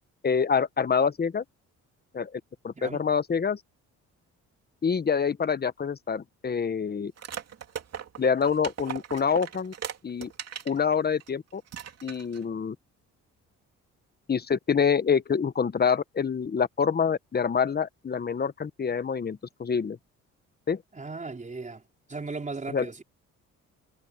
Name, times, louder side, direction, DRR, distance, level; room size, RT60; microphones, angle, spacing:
voice 1, 0.2-1.4 2.1-3.6 4.8-7.1 8.2-9.7 10.0-10.3 10.6-11.6 12.0-12.8 14.3-20.0 20.7-20.8 22.7-22.9, left 6 dB, 30° left, 1.0 m, -26 dB
voice 2, 2.7-3.1 20.9-21.8 22.1-23.0, right 3 dB, 25° right, 4.6 m, -36 dB
sound 1, 7.2-10.8 11.2-11.3 11.7-12.4, right 8 dB, 55° right, 2.6 m, -38 dB
cardioid pair, 90°, 30 cm